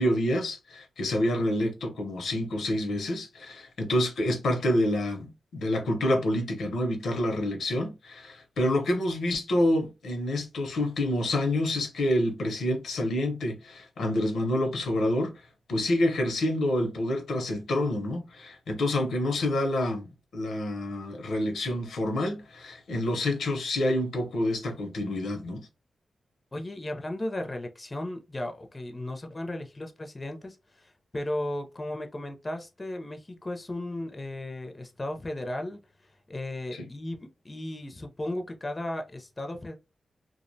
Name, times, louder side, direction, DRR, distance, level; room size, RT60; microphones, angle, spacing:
voice 1, 0.0-15.4 15.7-25.6 36.7-36.9, left 1 dB, 85° left, 0.6 m, -28 dB
voice 2, 26.5-35.8 36.3-39.7, left 1 dB, 25° left, 0.4 m, -35 dB
2.4 x 2.0 x 2.6 m
cardioid pair, 85°, 0 cm